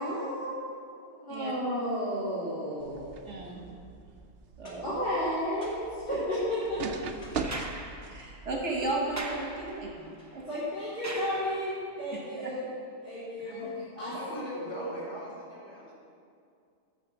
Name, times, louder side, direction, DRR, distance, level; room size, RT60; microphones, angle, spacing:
voice 1, 0.0-3.1 4.8-7.0 10.5-12.7 13.0-13.7 14.0-14.8, equal, 45° left, -11 dB, 2.8 m, -33 dB
sound 1, 2.8-10.0, right 5 dB, 60° right, 0.9 m, -42 dB
voice 2, 3.3-3.6 4.6-4.8 6.8-6.9 8.1-10.4 14.0-14.1, right 2 dB, 75° right, -1 dB, 1.6 m, -34 dB
sound 2, 7.3-12.0 13.5-13.6, right 2 dB, 20° right, 0.7 m, -42 dB
voice 3, 14.1-15.9, left 1 dB, 75° left, -7 dB, 2.9 m, -41 dB
9.8 x 6.4 x 7.2 m, 2.3 s
omnidirectional pair, 1.2 m